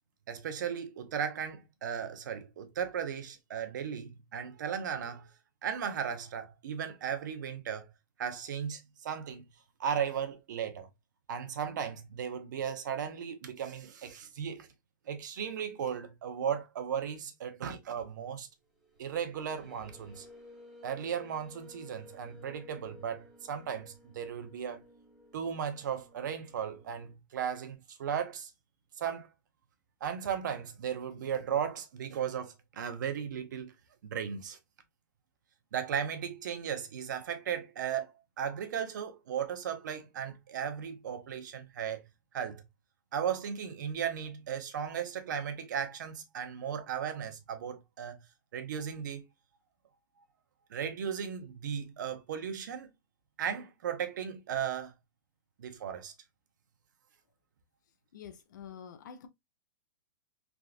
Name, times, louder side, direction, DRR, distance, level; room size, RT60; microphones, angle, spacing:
voice 1, 0.3-5.3 5.6-7.9 8.2-9.5 9.8-10.9 11.3-14.7 15.1-18.5 19.0-20.3 20.8-24.8 25.3-28.5 29.0-29.3 30.0-33.7 34.0-34.6 35.7-38.1 38.4-42.0 42.3-42.6 43.1-48.2 48.5-49.3 50.2-50.3 50.7-52.9 53.4-54.9 55.6-56.1, right 8 dB, 65° right, 0.8 m, -36 dB
sound 1, 18.7-27.2, left 1 dB, 5° right, 0.8 m, -55 dB
voice 2, 58.1-59.3, left 8 dB, 60° left, 0.6 m, -47 dB
3.6 x 2.4 x 2.5 m
hypercardioid pair, 165°, 11 cm